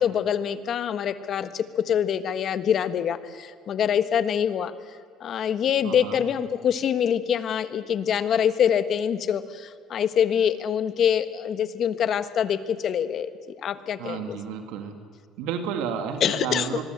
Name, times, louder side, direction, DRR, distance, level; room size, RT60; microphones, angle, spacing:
voice 1, 0.0-4.7 5.2-14.4 16.2-16.7, left 8 dB, 50° left, 12 dB, 1.4 m, -25 dB
voice 2, 5.8-6.2 14.0-15.0 15.4-16.9, right 7 dB, 85° right, 6 dB, 2.4 m, -31 dB
25.0 x 21.5 x 8.0 m, 2.1 s
cardioid pair, 115°, 0 cm